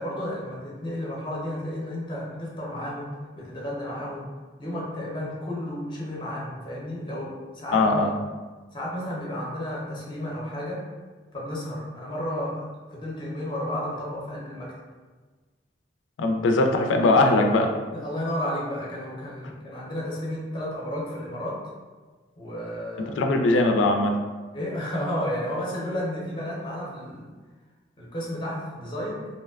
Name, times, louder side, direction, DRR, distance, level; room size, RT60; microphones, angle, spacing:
voice 1, 0.0-3.1 3.4-4.3 4.6-8.1 8.7-10.8 11.3-14.7 17.9-21.6 22.4-23.2 24.5-27.3 28.0-29.3, left 1 dB, 25° left, -4 dB, 0.5 m, -32 dB
voice 2, 7.7-8.1 16.2-17.7 23.0-24.1, left 2 dB, 90° left, 3 dB, 0.3 m, -20 dB
2.6 x 2.2 x 2.2 m, 1.3 s
head